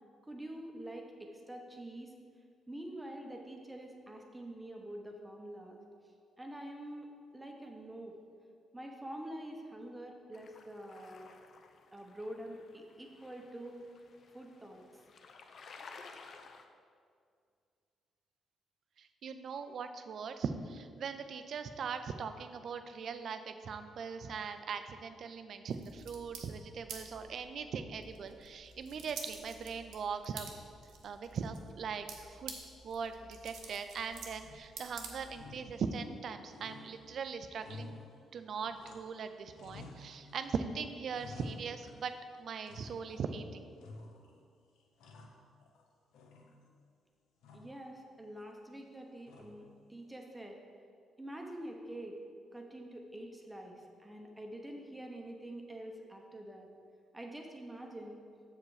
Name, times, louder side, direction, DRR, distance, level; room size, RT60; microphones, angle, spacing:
voice 1, 0.2-2.1 2.7-5.8 6.4-8.2 8.7-11.3 11.9-13.9 14.3-14.8 47.5-50.6 51.2-52.2 52.5-56.7 57.1-58.2, right 1 dB, 10° right, 2 dB, 0.8 m, -46 dB
sound 1, 10.3-16.6, left 4 dB, 55° left, 0.5 m, -55 dB
voice 2, 19.0-30.5 31.0-32.6 32.8-38.0 38.3-42.1 42.4-43.7, right 6 dB, 60° right, 9 dB, 0.4 m, -40 dB
sound 2, 25.7-35.6, right 5 dB, 80° right, 0.9 m, -50 dB
sound 3, 34.4-34.9 35.3-36.2 36.5-39.2 39.5-40.5 40.8-42.2 42.6-43.3 43.8-44.4 44.8-45.8 46.1-46.9 47.4-47.8 49.3-49.8, left 3 dB, 90° left, 0.8 m, -53 dB
6.9 x 4.9 x 4.8 m, 2.3 s
cardioid pair, 90°, 0 cm